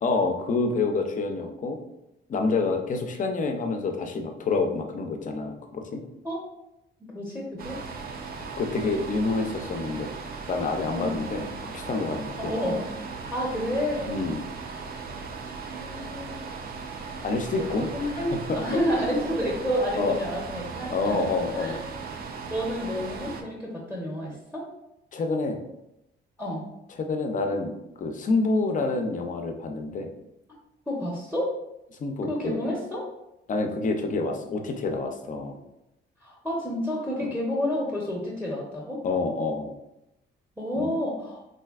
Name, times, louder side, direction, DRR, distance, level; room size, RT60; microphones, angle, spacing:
voice 1, 0.0-1.8 2.3-6.0 8.6-10.1 10.5-11.5 11.7-12.8 14.1-14.4 17.2-18.6 20.0-20.2 20.9-21.8 25.1-25.6 27.0-30.1 32.0-32.6 33.5-35.6 39.0-39.7 40.8-40.9, left 3 dB, 40° left, 5 dB, 0.5 m, -27 dB
voice 2, 7.0-7.8 10.9-11.2 12.4-12.9 13.3-14.1 15.7-16.5 17.6-21.3 21.5-21.8 22.5-24.7 26.4-26.6 30.9-31.5 32.3-33.1 36.2-39.0 40.6-41.4, equal, ahead, -4 dB, 0.7 m, -30 dB
sound 1, 7.6-23.4, right 4 dB, 50° right, 0.4 m, -38 dB
3.2 x 2.6 x 2.3 m, 0.88 s
cardioid pair, 90°, 20 cm